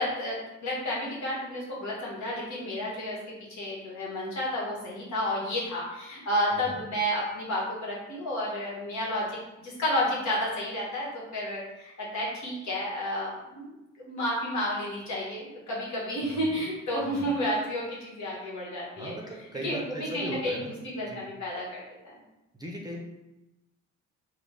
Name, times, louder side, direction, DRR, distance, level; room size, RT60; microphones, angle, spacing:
voice 1, 0.0-19.2 19.6-22.2, equal, 70° left, -4 dB, 1.4 m, -31 dB
voice 2, 19.0-20.7 21.0-21.2 22.6-23.0, right 1 dB, 15° right, -2 dB, 0.6 m, -38 dB
3.6 x 2.1 x 3.7 m, 0.96 s
cardioid pair, 90°, 30 cm